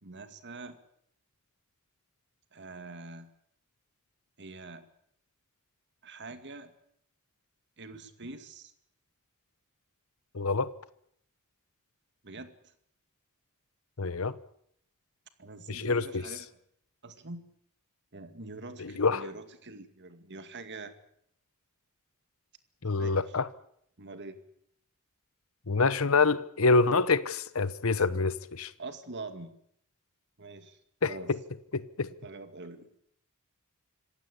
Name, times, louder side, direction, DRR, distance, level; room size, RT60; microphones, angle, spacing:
voice 1, 0.0-0.8 2.5-3.3 4.4-4.9 6.0-6.7 7.8-8.7 12.2-12.7 15.4-16.5 17.0-17.5 18.1-20.9 23.0-23.4 24.0-24.4 28.8-29.6 30.4-30.8 31.1-31.3 32.2-32.9, right 3 dB, 55° right, 2.2 m, -44 dB
voice 2, 10.3-10.7 14.0-14.4 15.7-16.2 18.8-19.2 22.8-23.5 25.7-28.7 31.0-31.1 31.7-32.1, left 4 dB, 70° left, 1.0 m, -26 dB
26.5 x 15.5 x 8.4 m
head